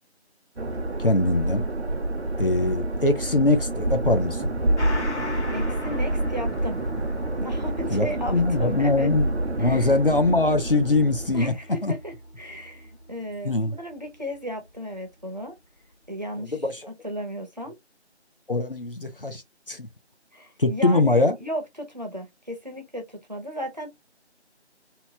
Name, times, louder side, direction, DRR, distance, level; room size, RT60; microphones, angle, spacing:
sound 1, 0.6-11.5, right 1 dB, 70° right, 0.8 m, -28 dB
voice 1, 1.0-1.6 2.4-4.5 7.9-9.3 9.6-11.5 11.8-11.9 13.4-13.7 16.4-16.8 18.5-19.4 19.7-19.9 20.6-21.4, left 2 dB, 55° left, 0.5 m, -22 dB
Gong, 4.8-13.7 14.1-14.2, left 2 dB, 90° left, 1.3 m, -40 dB
voice 2, 5.5-6.8 7.4-9.1 9.6-9.9 11.3-15.5 16.1-17.7 20.3-23.9, equal, 40° right, 0.7 m, -35 dB
2.9 x 2.2 x 2.6 m
figure-of-eight pair, 175°, 34 cm